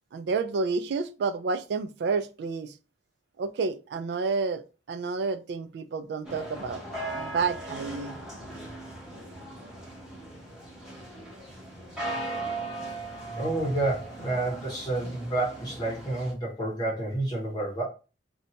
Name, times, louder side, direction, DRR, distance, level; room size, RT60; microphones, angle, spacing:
voice 1, 0.1-2.7 3.4-6.8 7.1-8.2, right 4 dB, 65° right, 0.3 m, -30 dB
sound 1, 6.2-16.3, right 2 dB, 5° right, 1.0 m, -38 dB
voice 2, 13.4-17.8, right 2 dB, 25° left, 0.8 m, -29 dB
2.7 x 2.2 x 2.8 m
head